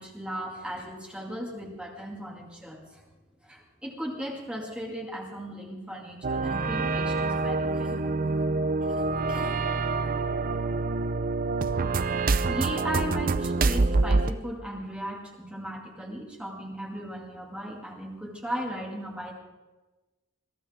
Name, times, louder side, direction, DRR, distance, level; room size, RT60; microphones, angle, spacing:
voice 1, 0.0-3.0 3.4-8.0 8.8-9.6 12.5-19.3, equal, 5° right, -2 dB, 2.2 m, -37 dB
sound 1, 6.2-14.3, right 3 dB, 45° right, 0.6 m, -26 dB
22.0 x 15.5 x 3.6 m, 1.1 s
head